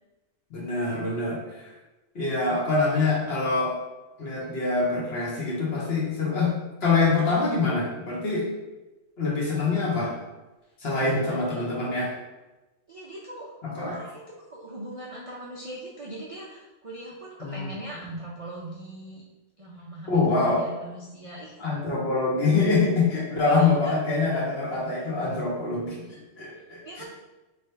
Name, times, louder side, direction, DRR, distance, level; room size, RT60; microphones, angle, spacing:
voice 1, 0.5-1.7 2.1-3.7 4.2-6.5 6.8-8.5 9.2-10.2 10.8-12.1 13.6-14.0 17.4-17.7 20.1-20.7 21.6-27.0, left 3 dB, 55° left, -3 dB, 1.1 m, -25 dB
voice 2, 11.1-11.7 12.9-14.2 14.5-19.2 19.6-21.6 23.4-23.9 26.8-27.0, right 1 dB, 55° right, -4 dB, 0.4 m, -40 dB
3.3 x 2.3 x 4.3 m, 1.1 s
omnidirectional pair, 1.3 m